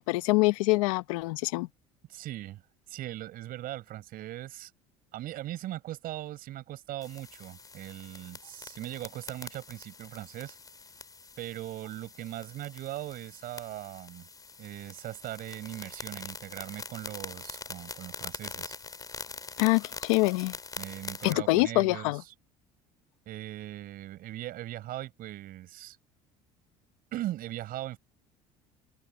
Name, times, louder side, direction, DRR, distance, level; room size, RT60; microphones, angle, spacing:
voice 1, 0.0-1.7 19.6-20.5 21.2-22.2, left 23 dB, 85° left, 0.9 m, -25 dB
voice 2, 2.1-2.6 2.9-4.7 5.1-10.6 11.4-14.3 14.6-18.8 20.8-22.3 23.3-26.0 27.1-28.0, right 14 dB, 60° right, 6.0 m, -39 dB
sound 1, 7.0-21.3, left 4 dB, 20° left, 3.9 m, -44 dB
open air
supercardioid pair, 90°, 17 cm